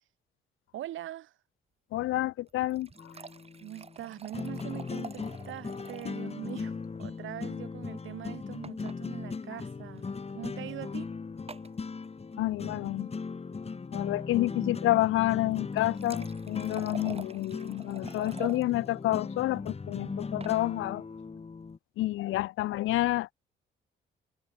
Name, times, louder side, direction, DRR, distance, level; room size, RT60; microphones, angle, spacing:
voice 1, 0.7-1.3 3.6-10.1 10.3-11.1, right 13 dB, 80° right, 3.2 m, -42 dB
voice 2, 1.9-3.1 12.4-13.1 13.9-21.0 22.0-23.3, left 16 dB, 90° left, 1.7 m, -29 dB
sound 1, 2.5-6.2 6.5-6.6 6.8-6.9 8.6-9.0 10.0-10.1 11.5-11.8 15.5-18.6 20.1-20.6, right 4 dB, 30° right, 5.7 m, -46 dB
sound 2, 3.0-21.8, left 4 dB, 30° left, 4.2 m, -38 dB
cardioid pair, 90°, 20 cm